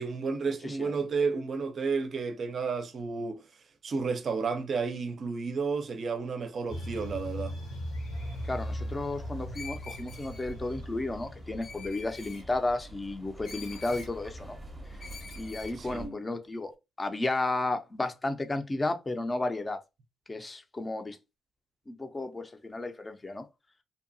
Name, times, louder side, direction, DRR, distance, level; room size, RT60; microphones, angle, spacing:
voice 1, 0.0-3.4 3.8-7.6 15.8-16.2, right 4 dB, 50° right, 0.5 m, -32 dB
sound 1, 6.7-12.1, equal, 85° left, 0.9 m, -38 dB
sound 2, 8.1-16.1, right 1 dB, 15° right, 0.7 m, -47 dB
voice 2, 8.4-14.6 15.4-16.7 17.0-19.8 20.3-21.2 21.9-23.4, left 2 dB, 20° left, 0.5 m, -33 dB
Screech, 9.5-10.5 11.6-12.4 13.4-14.1 15.0-15.8, left 5 dB, 65° left, 0.7 m, -45 dB
2.7 x 2.2 x 2.6 m
cardioid pair, 90°, 0 cm